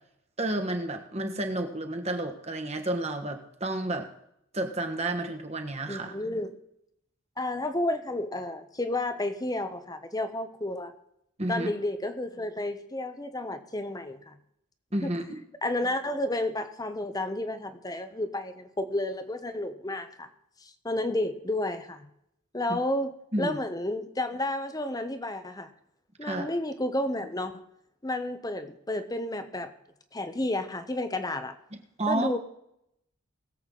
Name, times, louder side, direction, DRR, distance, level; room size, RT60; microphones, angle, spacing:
voice 1, 0.4-4.1 4.5-6.1 11.4-11.7 14.9-15.4 23.3-23.6 26.2-26.5 32.0-32.3, right 1 dB, 30° right, 4 dB, 1.4 m, -31 dB
voice 2, 5.9-6.5 7.4-10.9 11.5-14.3 15.0-15.1 15.6-20.3 20.6-22.1 22.5-25.7 26.2-27.6 28.0-29.7 30.1-31.5 32.1-32.4, left 1 dB, 15° left, 9 dB, 0.9 m, -31 dB
21.0 x 7.9 x 3.9 m, 0.78 s
head